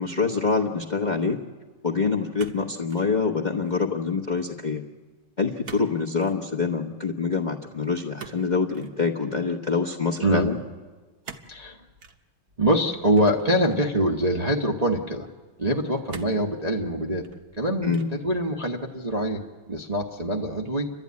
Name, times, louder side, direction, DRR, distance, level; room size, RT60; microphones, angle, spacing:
voice 1, 0.0-1.4 1.8-4.8 5.4-10.6 17.8-18.1, left 4 dB, 30° left, 1 dB, 1.0 m, -25 dB
sound 1, 2.4-3.1 3.5-3.9 5.6-5.9 6.2-6.4 8.2-9.0 11.2-11.6 12.0-12.2 13.1-13.9 14.6-14.7 16.1-16.5 17.1-17.6 17.9-18.3, right 6 dB, 55° right, 1.5 m, -43 dB
voice 2, 12.6-15.3 15.6-17.3 17.6-20.9, right 1 dB, 25° right, -1 dB, 0.9 m, -24 dB
29.5 x 12.5 x 9.6 m, 1.3 s
omnidirectional pair, 2.2 m